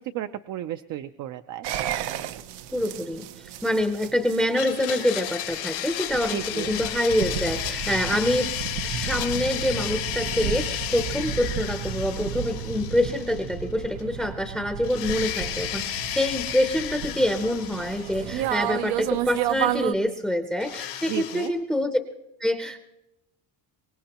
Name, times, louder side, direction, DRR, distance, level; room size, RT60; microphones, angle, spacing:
voice 1, 0.0-1.9 6.1-6.8 21.1-21.5, right 12 dB, 50° right, 9 dB, 0.5 m, -34 dB
sound 1, 1.6-19.9, right 10 dB, 80° right, 0.8 m, -32 dB
voice 2, 2.7-8.5 8.8-22.0 22.4-22.8, left 1 dB, ahead, 7 dB, 0.6 m, -26 dB
Domestic sounds home sounds, 4.5-13.7 14.0-14.1 14.8-18.8 20.6-21.5, left 12 dB, 90° left, 2.5 m, -33 dB
24.0 x 19.5 x 2.9 m, 0.92 s
cardioid pair, 150°, 39 cm